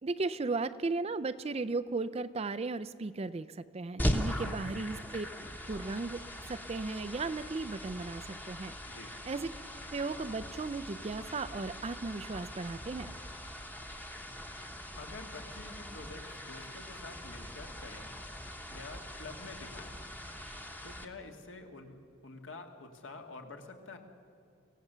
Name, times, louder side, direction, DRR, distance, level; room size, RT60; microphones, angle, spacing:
voice 1, 0.0-5.3 5.7-6.2 6.5-8.7 9.2-9.5 9.9-13.1, right 3 dB, 30° right, 14 dB, 0.4 m, -36 dB
sound 1, 4.0-21.0, equal, 10° left, 1.0 m, -40 dB
voice 2, 15.0-18.1 18.7-20.0 20.8-24.0, left 3 dB, 65° left, 4 dB, 1.9 m, -48 dB
24.5 x 16.5 x 6.8 m, 2.6 s
head